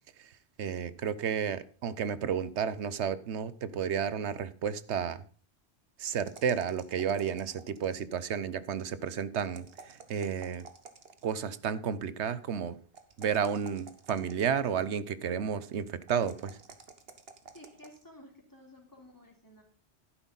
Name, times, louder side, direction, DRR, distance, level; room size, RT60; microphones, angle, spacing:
voice 1, 0.6-5.2 6.0-10.7 11.2-12.8 13.2-16.6, right 7 dB, 85° right, 16 dB, 1.1 m, -32 dB
sound 1, 6.3-8.1 9.4-11.4 12.9-14.8 16.1-18.0, right 4 dB, 60° right, 1.6 m, -52 dB
voice 2, 17.5-19.6, left 1 dB, 15° left, 1 dB, 3.4 m, -53 dB
12.0 x 10.5 x 4.0 m, 0.41 s
omnidirectional pair, 1.1 m